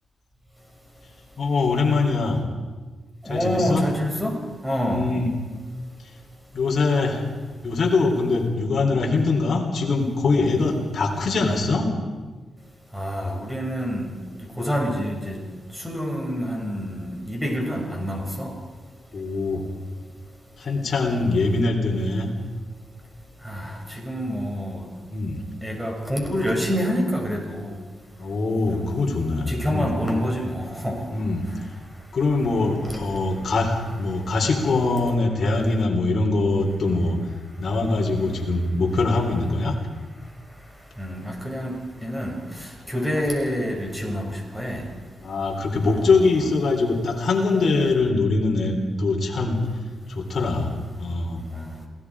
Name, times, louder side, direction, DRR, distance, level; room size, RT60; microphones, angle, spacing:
voice 1, 1.4-2.4 3.2-3.9 4.9-5.3 6.0-6.1 6.5-7.2 7.6-11.9 19.1-19.6 20.6-22.3 25.1-25.4 28.2-29.9 31.1-31.5 32.1-37.2 37.6-39.7 45.2-49.6 50.1-51.4, left 3 dB, 60° left, 0 dB, 4.1 m, -23 dB
voice 2, 3.2-4.4 4.6-5.2 12.9-14.1 14.6-15.4 15.8-18.5 23.4-24.8 25.6-27.7 28.7-29.0 29.5-31.1 32.4-32.5 32.9-33.0 41.0-41.7 42.0-44.8 45.8-46.0 51.5-51.7, equal, ahead, 1 dB, 6.9 m, -27 dB
28.0 x 18.5 x 5.0 m, 1.4 s
cardioid pair, 60°, 0 cm